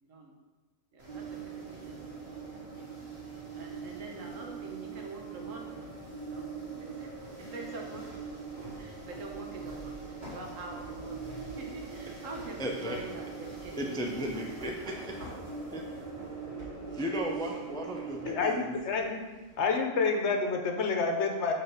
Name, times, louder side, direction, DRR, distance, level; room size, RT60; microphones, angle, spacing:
voice 1, 0.0-0.4 0.9-2.0 2.3-2.9 3.5-5.8 6.2-6.5 6.7-7.1 7.4-14.9, right 2 dB, 75° right, 0 dB, 1.4 m, -46 dB
sound 1, 1.0-19.8, left 1 dB, 60° right, 2.8 m, -51 dB
sound 2, 1.1-18.5, right 5 dB, 30° right, 0.9 m, -42 dB
voice 2, 12.6-13.0 13.8-15.2 15.7-15.8 16.9-18.7, equal, 5° left, 0 dB, 0.3 m, -35 dB
voice 3, 18.2-19.2 19.6-21.5, left 4 dB, 65° left, 3 dB, 1.0 m, -28 dB
5.7 x 4.0 x 5.5 m, 1.2 s
omnidirectional pair, 1.3 m